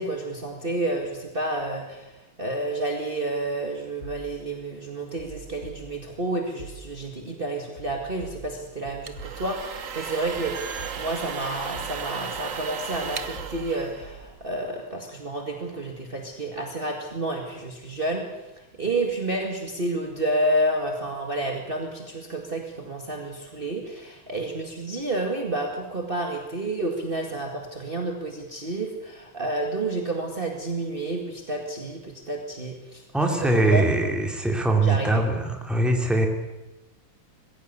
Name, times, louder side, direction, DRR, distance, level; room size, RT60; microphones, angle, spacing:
voice 1, 0.0-2.1 2.4-18.2 18.8-33.0 33.4-34.1 34.8-35.1, right 2 dB, 25° right, 1 dB, 2.2 m, -30 dB
sound 1, 4.0-4.6 5.2-6.2 6.6-7.2 7.8-9.8 10.3-11.4 11.7-12.4 12.9-14.3, right 3 dB, 40° left, 4.2 m, -44 dB
sound 2, 8.8-14.6, right 6 dB, 45° right, 1.3 m, -35 dB
voice 2, 33.1-36.3, right 2 dB, ahead, 2 dB, 2.7 m, -22 dB
21.5 x 16.0 x 8.2 m, 1.0 s
omnidirectional pair, 2.1 m